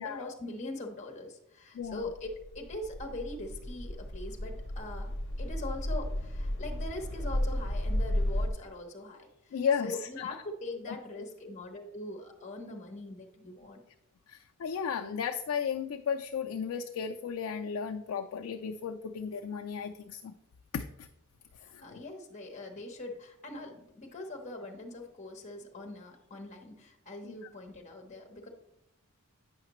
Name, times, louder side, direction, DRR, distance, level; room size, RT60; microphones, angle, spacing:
voice 1, 0.0-13.8 21.6-28.5, left 2 dB, 35° left, 3 dB, 0.9 m, -42 dB
sound 1, 1.9-8.5, left 1 dB, 60° left, 0.8 m, -33 dB
voice 2, 9.5-10.3 10.9-11.2 14.3-20.3 20.7-21.1 21.7-22.0 27.2-27.3, left 7 dB, 80° left, 4 dB, 0.4 m, -34 dB
8.6 x 5.7 x 3.0 m, 0.82 s
head